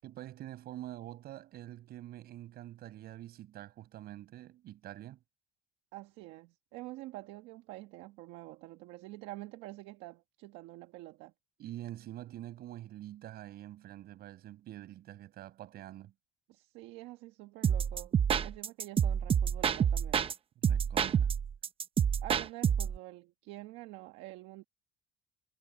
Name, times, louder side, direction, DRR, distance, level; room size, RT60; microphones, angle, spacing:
voice 1, 0.0-5.2 11.6-16.1 20.6-21.3, right 13 dB, 55° right, 7.1 m, -46 dB
voice 2, 5.9-11.3 16.5-20.3 22.2-24.6, right 19 dB, 80° right, 1.4 m, -47 dB
sound 1, 17.6-20.3 20.6-23.0, right 8 dB, 30° right, 0.8 m, -28 dB
cardioid pair, 135°, 19 cm